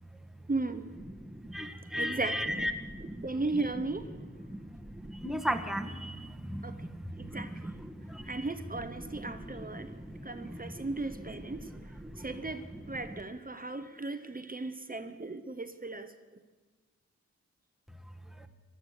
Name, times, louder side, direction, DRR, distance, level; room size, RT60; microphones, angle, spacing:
voice 1, 0.5-0.9 1.9-2.7 3.2-4.2 6.6-6.9 7.2-7.8 8.3-9.9 10.2-11.7 12.2-16.1, right 2 dB, 30° right, 10 dB, 1.0 m, -36 dB
voice 2, 1.2-3.3 4.2-8.4 9.0-12.4 13.1-13.2 18.4-18.5, equal, ahead, 5 dB, 1.5 m, -38 dB
16.5 x 12.5 x 6.6 m, 1.3 s
cardioid pair, 50°, 30 cm